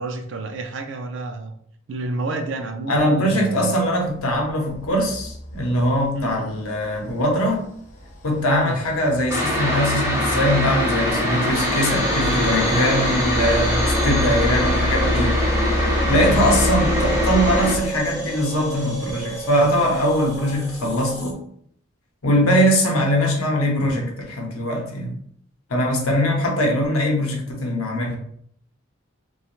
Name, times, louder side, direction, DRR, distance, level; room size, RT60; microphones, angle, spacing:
voice 1, 0.0-1.5 1.9-3.7 6.1-6.4 8.5-8.8 14.2-14.3 16.1-16.4, right 2 dB, 60° right, 5 dB, 0.4 m, -30 dB
voice 2, 2.9-7.6 8.2-15.3 16.1-21.4 22.2-25.1 25.7-28.2, equal, 90° left, 0 dB, 0.7 m, -21 dB
sound 1, 4.1-18.6, left 1 dB, 35° left, 0.4 m, -28 dB
sound 2, 9.3-17.7, left 1 dB, 15° right, 0.8 m, -23 dB
sound 3, 11.5-21.3, right 1 dB, 15° left, 1.0 m, -31 dB
3.0 x 2.2 x 2.5 m, 0.65 s
head